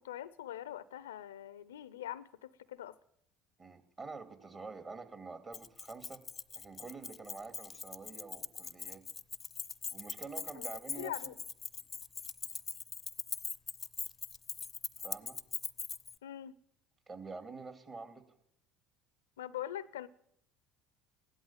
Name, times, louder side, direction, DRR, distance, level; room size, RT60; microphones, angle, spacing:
voice 1, 0.0-3.0 10.5-10.7 11.0-11.3 16.2-16.5 19.4-20.1, left 12 dB, 85° left, 0.6 m, -43 dB
voice 2, 3.6-6.2 6.5-9.0 9.9-11.3 15.0-15.4 17.1-18.2, right 4 dB, 30° right, 2.6 m, -47 dB
Keys jangling, 5.5-16.2, left 6 dB, 30° left, 0.6 m, -42 dB
16.0 x 11.5 x 7.3 m
hypercardioid pair, 70°, 0 cm